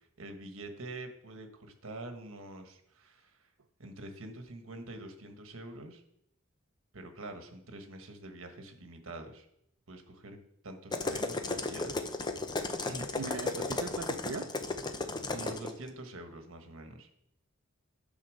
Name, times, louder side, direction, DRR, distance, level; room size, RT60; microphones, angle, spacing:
voice 1, 0.0-3.4 3.8-6.0 6.9-9.5 9.9-12.0 12.9-13.1 15.3-17.1, right 2 dB, 70° right, 6 dB, 1.3 m, -45 dB
sound 1, 10.9-15.7, left 3 dB, 20° left, 0.6 m, -34 dB
voice 2, 13.1-14.5, right 4 dB, 90° right, 3 dB, 0.6 m, -39 dB
9.7 x 4.0 x 6.3 m, 0.74 s
head